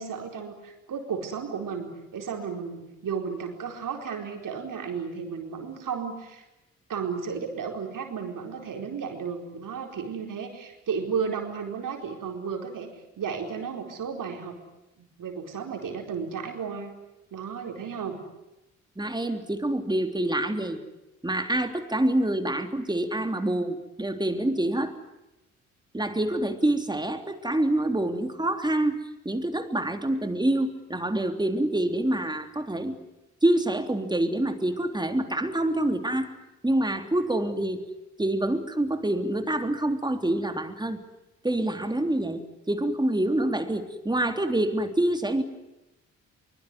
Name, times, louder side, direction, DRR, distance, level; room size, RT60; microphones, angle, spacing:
voice 1, 0.0-6.4 6.9-12.9 13.2-14.6 15.0-17.0 17.3-18.2, right 6 dB, 50° right, 3 dB, 4.5 m, -33 dB
voice 2, 19.0-20.8 21.2-24.9 25.9-33.0 33.4-36.3 36.6-37.8 38.2-41.0 41.4-45.4, right 1 dB, 10° right, 6 dB, 3.4 m, -26 dB
24.0 x 21.5 x 9.8 m, 0.96 s
hypercardioid pair, 45°, 39 cm